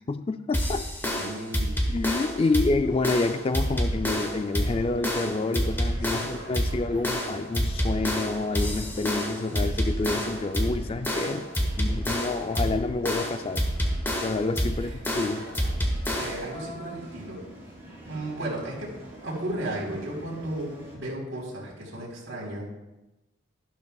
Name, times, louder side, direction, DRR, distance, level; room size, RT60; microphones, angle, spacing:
voice 1, 0.1-0.9 1.9-11.5 11.8-13.7 14.2-15.5, left 3 dB, 30° left, 10 dB, 0.3 m, -28 dB
sound 1, 0.5-16.5, equal, 10° left, 1.1 m, -28 dB
voice 2, 1.0-1.9 2.4-2.5 6.0-6.2 6.7-6.8 14.8-14.9 16.2-17.4 18.1-18.9 19.2-22.6, right 1 dB, 80° right, -3 dB, 3.9 m, -34 dB
sound 2, 2.8-21.0, right 1 dB, 15° right, 3.2 m, -46 dB
12.5 x 12.0 x 2.3 m, 1.0 s
head